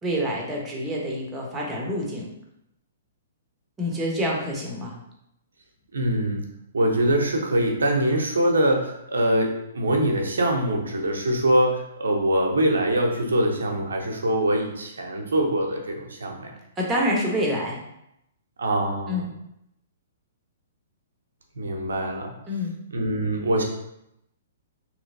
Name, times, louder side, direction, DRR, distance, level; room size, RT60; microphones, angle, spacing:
voice 1, 0.0-2.3 3.8-5.0 16.8-17.8 19.1-19.3 22.5-22.8, equal, 15° right, -2 dB, 0.8 m, -27 dB
voice 2, 5.9-6.4 6.7-16.5 18.6-19.2 21.6-22.3 22.9-23.6, right 1 dB, 75° right, 1 dB, 0.7 m, -23 dB
3.1 x 2.9 x 2.6 m, 0.81 s
hypercardioid pair, 120°, 0 cm